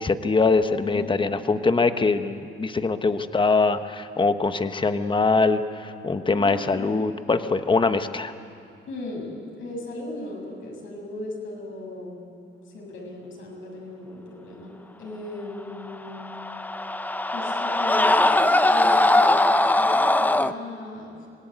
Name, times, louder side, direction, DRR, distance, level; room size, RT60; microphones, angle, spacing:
voice 1, 0.0-8.3, left 4 dB, 25° left, 9 dB, 1.2 m, -23 dB
voice 2, 0.8-1.2 6.3-7.0 8.9-9.3 9.6-12.2 12.7-16.3 17.3-21.1, left 1 dB, 75° left, -1 dB, 7.5 m, -36 dB
Screaming, 16.1-20.5, left 2 dB, 10° left, 0.7 m, -20 dB
26.0 x 18.5 x 9.4 m, 2.4 s
cardioid pair, 90°, 20 cm